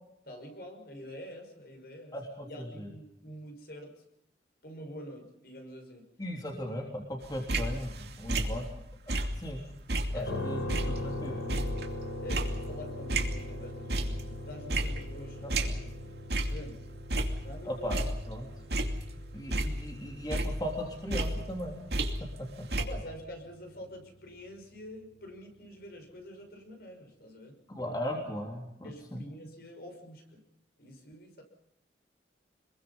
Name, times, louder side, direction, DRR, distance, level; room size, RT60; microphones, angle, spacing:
voice 1, 0.3-2.2 2.4-4.0 4.6-6.0 6.3-6.4 8.4-8.8 10.1-10.9 12.2-16.1 16.5-16.8 17.4-18.1 18.9-19.2 22.8-27.6 28.8-30.4 30.8-31.4, equal, 55° left, 4 dB, 5.8 m, -46 dB
voice 2, 2.1-2.9 6.2-7.9 8.2-8.6 9.1-9.6 10.1-10.6 10.9-11.4 15.4-15.5 17.6-18.5 19.3-21.8 22.4-22.5 27.7-29.2, equal, 20° left, 0 dB, 3.3 m, -37 dB
sound 1, 7.2-9.6 9.9-13.5 13.9-14.4 14.7-16.0 16.3-16.6 17.0-18.3 18.7-20.0 20.3-22.4 22.7-22.9, right 1 dB, 60° right, 2.7 m, -32 dB
sound 2, 10.3-24.3, left 1 dB, 75° left, 5.1 m, -42 dB
27.5 x 22.0 x 5.6 m, 0.83 s
head